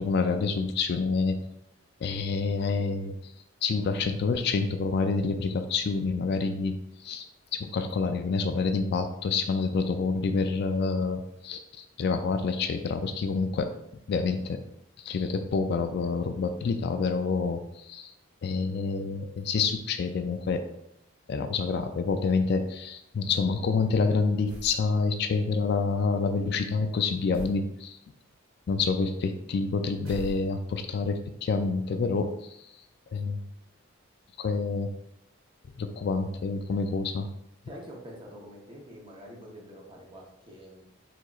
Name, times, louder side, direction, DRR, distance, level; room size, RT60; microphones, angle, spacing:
voice 1, 0.0-1.4 2.0-3.3 3.6-13.7 14.1-14.6 15.0-18.1 18.4-20.7 21.3-28.0 28.7-32.7 33.1-33.4 34.4-34.9 35.8-37.3, left 4 dB, 50° left, 8 dB, 0.3 m, -28 dB
sound 1, 24.5-24.8 27.3-27.7 30.0-30.8, equal, 70° right, 1.4 m, -41 dB
voice 2, 37.7-40.8, equal, 25° right, -2 dB, 0.8 m, -46 dB
4.7 x 4.0 x 2.4 m, 0.80 s
head